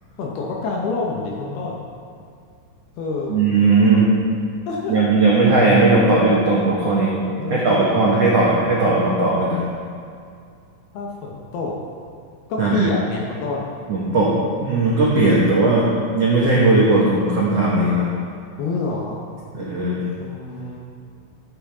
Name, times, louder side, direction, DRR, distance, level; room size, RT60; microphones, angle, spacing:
voice 1, 0.2-1.8 3.0-3.5 4.7-4.9 7.3-8.1 10.9-11.8 12.5-13.7 18.6-19.2 20.2-20.8, left 3 dB, 70° left, -2 dB, 2.6 m, -27 dB
voice 2, 3.3-4.1 4.9-7.1 7.5-9.6 12.6-12.9 13.9-14.3 14.5-15.8 16.1-18.1 19.5-20.0, right 3 dB, 85° right, -7 dB, 1.4 m, -17 dB
13.5 x 9.7 x 3.6 m, 2.3 s
omnidirectional pair, 5.6 m